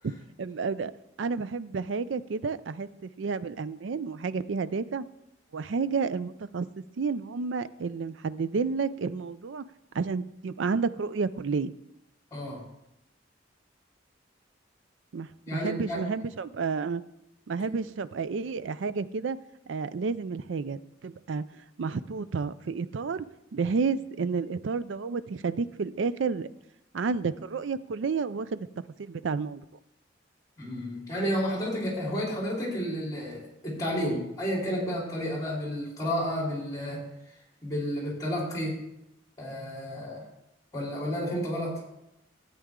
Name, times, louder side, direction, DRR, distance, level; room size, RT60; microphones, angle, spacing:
voice 1, 0.4-0.9 1.2-5.0 5.5-6.7 7.0-9.6 9.9-11.7 15.1-17.0 17.5-19.4 19.7-21.4 21.8-23.2 23.5-26.5 26.9-28.7 29.0-29.6, right 4 dB, 75° right, 15 dB, 0.4 m, -30 dB
voice 2, 12.3-12.6 15.5-16.1 30.6-37.0 37.6-38.8 39.4-40.3 40.7-41.8, equal, 20° left, -3 dB, 4.2 m, -31 dB
13.0 x 8.9 x 3.7 m, 0.85 s
head